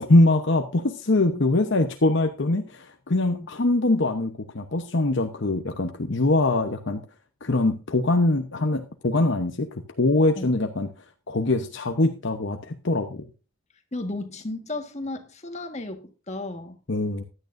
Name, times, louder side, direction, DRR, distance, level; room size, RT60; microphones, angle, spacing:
voice 1, 0.0-7.0 7.4-10.9 11.3-13.3 16.9-17.2, left 2 dB, 55° left, 0.9 m, -23 dB
voice 2, 13.9-16.8, left 2 dB, 30° left, 1.6 m, -34 dB
15.5 x 11.0 x 2.6 m
head